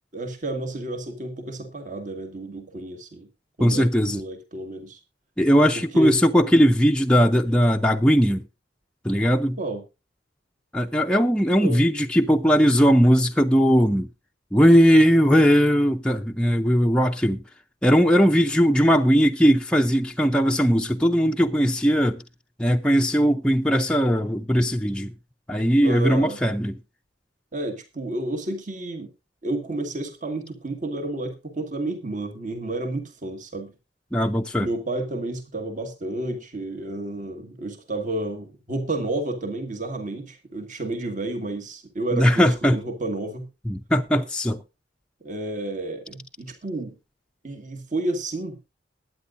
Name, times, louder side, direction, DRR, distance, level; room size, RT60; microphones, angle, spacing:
voice 1, 0.1-3.3 3.6-5.0 5.7-6.2 9.6-9.8 11.5-11.8 25.8-26.4 27.5-29.1 29.4-33.7 34.6-43.5 45.2-46.9 47.4-48.6, right 2 dB, 40° right, 1.8 m, -31 dB
voice 2, 3.6-4.2 5.4-8.4 9.0-9.6 10.7-14.1 14.5-17.4 17.8-22.2 22.6-25.1 25.5-26.8 34.1-34.7 42.1-42.8 43.7-44.6, equal, 5° left, 0.5 m, -19 dB
21.0 x 9.3 x 2.6 m
head